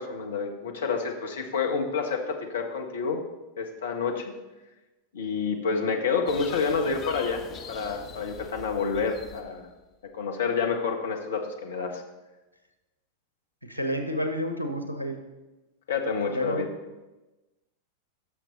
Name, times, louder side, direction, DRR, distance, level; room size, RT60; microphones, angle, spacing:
voice 1, 0.0-3.2 3.6-4.3 5.1-9.7 10.1-12.0 15.9-16.7, left 5 dB, 65° left, 3 dB, 1.4 m, -28 dB
sound 1, 6.3-9.8, left 6 dB, 30° left, 1.3 m, -43 dB
voice 2, 13.6-15.2 16.3-16.7, equal, 85° right, 6 dB, 1.2 m, -30 dB
16.0 x 6.7 x 4.0 m, 1.1 s
figure-of-eight pair, 90°, 0 cm